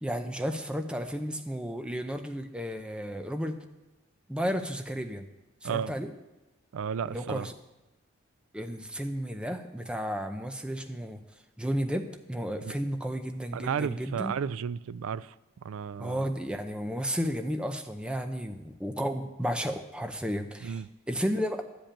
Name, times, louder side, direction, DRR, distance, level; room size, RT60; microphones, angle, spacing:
voice 1, 0.0-3.6 4.3-5.3 5.6-6.1 7.0-7.5 8.5-11.2 11.6-14.3 16.0-21.6, equal, 5° right, 0.6 m, -33 dB
voice 2, 6.7-7.5 12.6-12.7 13.5-15.3 15.6-16.3 20.6-20.9, right 7 dB, 75° right, 0.4 m, -33 dB
11.5 x 5.2 x 8.8 m
head